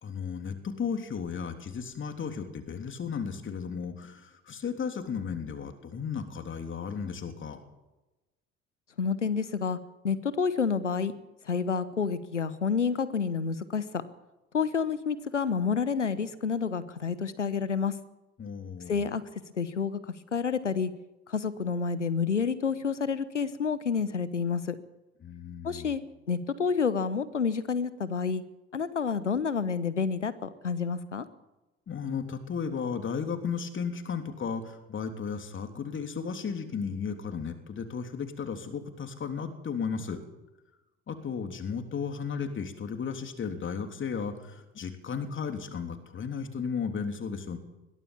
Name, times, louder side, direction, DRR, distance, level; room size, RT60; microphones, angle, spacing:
voice 1, 0.0-7.6 18.4-19.1 25.2-26.0 31.9-40.2 41.1-47.6, left 6 dB, 35° left, 6 dB, 3.4 m, -34 dB
voice 2, 9.0-9.8 10.0-11.1 11.5-14.0 14.5-17.9 18.9-19.2 19.6-20.0 20.3-20.9 21.3-24.8 25.6-26.0 26.3-28.4 28.7-31.2, left 6 dB, 85° left, 16 dB, 1.1 m, -29 dB
22.0 x 16.5 x 7.2 m, 1.0 s
figure-of-eight pair, 60°, 35 cm